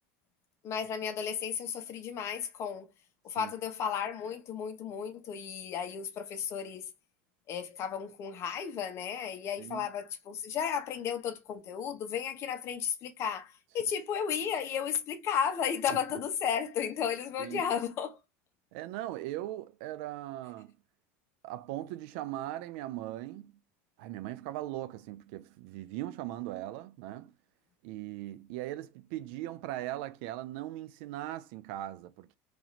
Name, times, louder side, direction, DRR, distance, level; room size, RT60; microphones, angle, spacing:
voice 1, 0.6-2.9 3.2-6.9 7.5-18.2, left 8 dB, 45° left, 0.9 m, -34 dB
voice 2, 9.6-9.9 15.9-16.0 17.4-17.6 18.7-20.7 21.4-23.5 24.0-27.3 27.8-32.3, right 15 dB, 70° right, 0.4 m, -39 dB
3.0 x 2.8 x 4.0 m
supercardioid pair, 130°, 7 cm